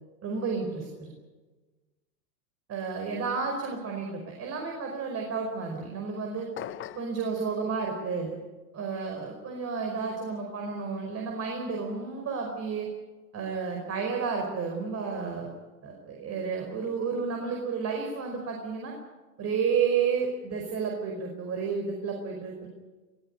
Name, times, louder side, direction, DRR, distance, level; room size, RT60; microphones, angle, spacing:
voice 1, 0.2-1.1 2.7-6.5 6.9-8.3 8.7-12.9 13.3-15.5 15.8-18.9 19.4-22.7, right 5 dB, 30° right, 2 dB, 5.1 m, -31 dB
sound 1, 6.6-7.2, left 11 dB, 25° left, 0.9 m, -39 dB
23.0 x 15.5 x 9.9 m, 1.3 s
hypercardioid pair, 115°, 49 cm